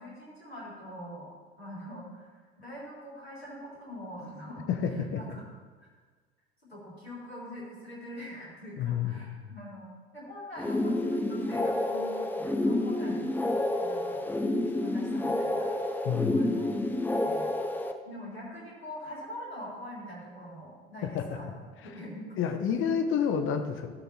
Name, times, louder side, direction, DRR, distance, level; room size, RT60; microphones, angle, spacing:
voice 1, 0.0-2.3 2.6-4.7 5.2-5.4 5.8-5.9 6.7-14.2 14.5-15.7 16.1-16.7 17.0-17.5 18.0-21.5 21.8-22.5 23.1-23.2, equal, 90° left, -6 dB, 3.6 m, -44 dB
voice 2, 4.7-5.4 8.8-9.3 16.0-16.5 21.0-21.5 21.8-21.9 22.4-23.9, left 7 dB, 45° left, 7 dB, 1.2 m, -29 dB
sound 1, 10.6-17.9, left 1 dB, 5° left, 0.9 m, -29 dB
16.5 x 5.8 x 4.3 m, 1.4 s
figure-of-eight pair, 65°, 30 cm